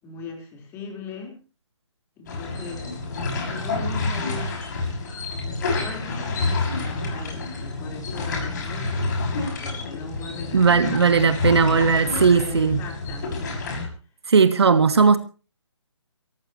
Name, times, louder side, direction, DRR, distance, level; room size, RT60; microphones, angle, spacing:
voice 1, 0.0-1.3 2.2-2.9 3.5-4.6 5.5-9.3 9.6-11.1 12.0-13.7, left 4 dB, 15° left, 2 dB, 4.3 m, -39 dB
sound 1, 2.3-13.9, left 3 dB, 40° left, 6.2 m, -28 dB
voice 2, 10.5-12.8 14.3-15.2, right 5 dB, 60° right, 11 dB, 1.6 m, -17 dB
24.0 x 14.5 x 3.1 m, 0.34 s
figure-of-eight pair, 145°, 16 cm